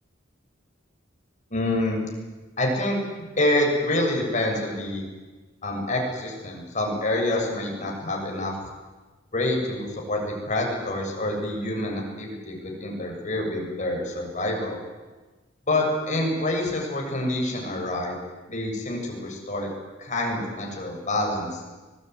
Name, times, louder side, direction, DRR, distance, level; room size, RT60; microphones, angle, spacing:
voice 1, 1.5-2.0 2.6-5.0 5.6-8.5 9.3-14.8 15.7-18.2 18.5-19.7 20.0-21.6, left 1 dB, 40° left, 1 dB, 7.3 m, -27 dB
24.5 x 21.0 x 9.5 m, 1.3 s
head